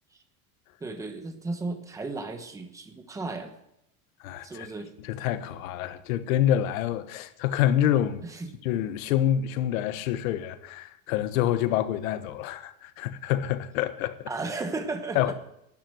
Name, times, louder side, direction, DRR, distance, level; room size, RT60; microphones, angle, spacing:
voice 1, 0.8-3.5 4.4-4.9 8.2-8.5 14.3-15.2, right 3 dB, 10° right, 1.1 m, -34 dB
voice 2, 4.2-4.7 5.0-8.3 8.6-14.3 15.1-15.3, left 11 dB, 80° left, 1.2 m, -27 dB
12.0 x 9.5 x 9.1 m
cardioid pair, 175°, 40 cm